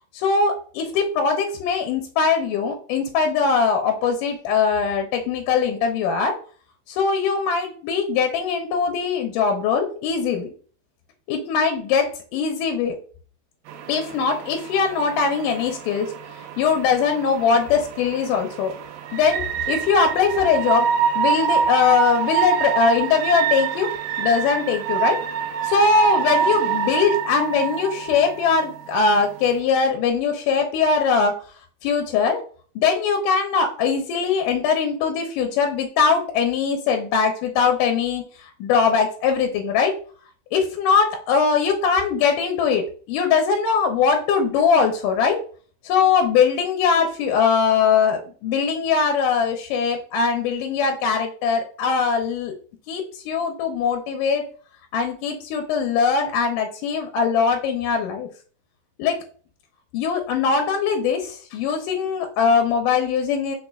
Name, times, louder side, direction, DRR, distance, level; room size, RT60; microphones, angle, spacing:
voice 1, 0.1-6.3 6.9-10.5 11.3-13.0 13.9-16.1 16.6-18.7 19.1-20.9 21.2-23.9 24.2-25.2 25.6-31.3 31.8-32.4 32.8-39.9 40.5-45.4 45.8-52.5 52.9-54.4 54.9-58.3 59.0-59.2 59.9-63.6, left 5 dB, 80° left, 4 dB, 2.0 m, -21 dB
sound 1, 13.7-29.6, right 8 dB, 80° right, 2.3 m, -26 dB
5.3 x 4.3 x 2.3 m, 0.42 s
omnidirectional pair, 4.3 m